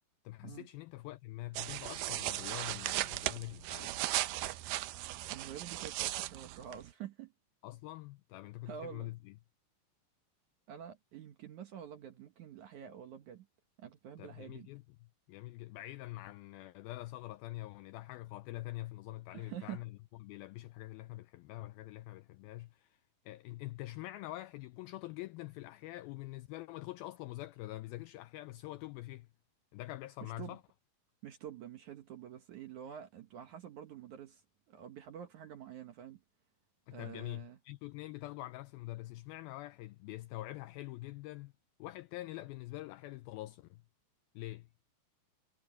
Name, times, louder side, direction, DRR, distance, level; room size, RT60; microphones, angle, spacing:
voice 1, 0.3-3.9 7.6-9.3 14.2-14.8 15.3-23.0 23.3-29.3 29.7-30.6 36.9-41.5 41.8-43.8 44.4-44.7, left 18 dB, 85° left, 2.1 m, -45 dB
sound 1, 1.5-6.9, right 15 dB, 90° right, 1.9 m, -37 dB
voice 2, 5.3-7.3 8.7-9.1 10.7-13.5 13.8-14.7 19.3-19.8 30.2-30.6 31.2-34.4 34.7-36.2 36.9-37.6, right 9 dB, 65° right, 2.0 m, -47 dB
omnidirectional pair, 4.8 m